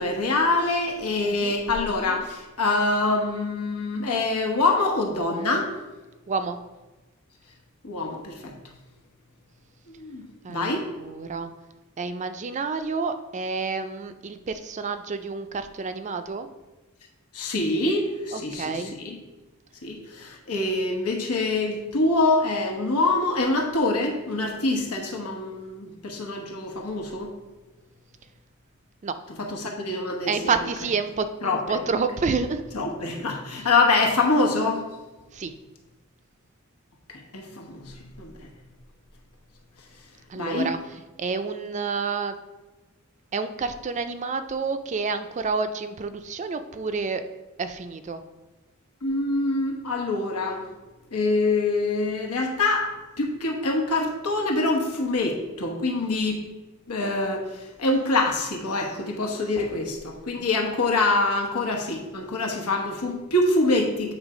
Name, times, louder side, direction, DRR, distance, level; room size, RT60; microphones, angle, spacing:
voice 1, 0.0-5.7 7.8-8.6 9.9-10.9 17.3-19.2 19.8-27.3 29.4-30.5 31.4-31.6 32.7-34.8 37.1-38.5 40.4-40.7 49.0-50.7 51.1-52.9 53.2-56.4 56.9-64.1, left 2 dB, 85° left, 2 dB, 1.2 m, -25 dB
voice 2, 6.3-6.6 10.4-11.5 12.0-16.5 18.3-18.9 29.0-29.1 30.3-32.8 33.5-33.7 35.3-35.5 40.3-40.8 41.2-42.3 43.3-47.2 47.6-48.2, right 4 dB, 30° right, 9 dB, 0.4 m, -29 dB
8.1 x 3.3 x 4.9 m, 1.1 s
head